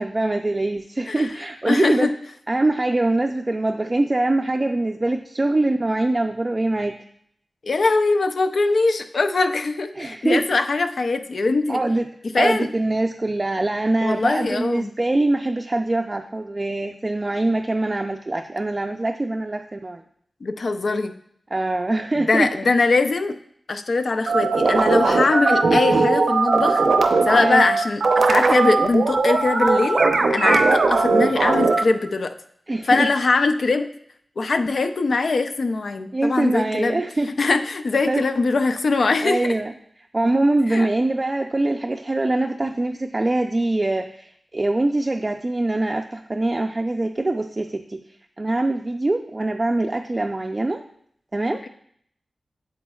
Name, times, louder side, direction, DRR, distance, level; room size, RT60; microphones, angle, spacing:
voice 1, 0.0-2.1 2.5-6.9 9.9-10.4 11.7-12.1 12.4-20.0 21.5-22.5 27.4-27.6 28.5-28.6 32.7-33.1 36.1-37.3 38.1-38.2 39.2-39.7 40.1-48.0 48.4-50.8 51.3-51.6, right 2 dB, 30° right, 4 dB, 0.4 m, -23 dB
voice 2, 1.1-1.4 1.7-2.1 7.6-11.8 12.2-12.7 14.0-14.9 20.4-21.1 22.2-23.3 23.7-26.8 27.3-30.0 30.3-32.3 32.8-33.9 34.4-37.0 37.4-39.6 40.7-40.9, left 3 dB, 70° left, 8 dB, 0.5 m, -21 dB
sound 1, 24.3-31.8, right 3 dB, 80° right, 0.7 m, -19 dB
8.3 x 7.6 x 2.3 m, 0.68 s
wide cardioid pair, 70°, 0 cm